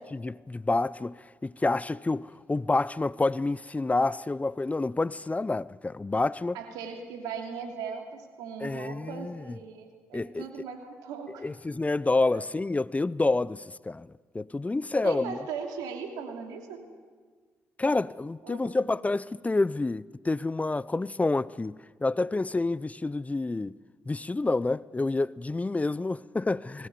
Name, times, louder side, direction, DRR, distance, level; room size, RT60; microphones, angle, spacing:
voice 1, 0.0-6.6 8.6-9.6 10.1-10.5 11.4-14.1 14.3-15.4 17.8-21.7 22.0-23.8 24.1-26.9, left 2 dB, 20° left, 0.6 m, -28 dB
voice 2, 6.5-11.5 12.3-12.4 15.0-16.8 18.4-18.8, right 6 dB, 85° right, 2.7 m, -38 dB
20.5 x 18.0 x 9.4 m
hypercardioid pair, 50°, 6 cm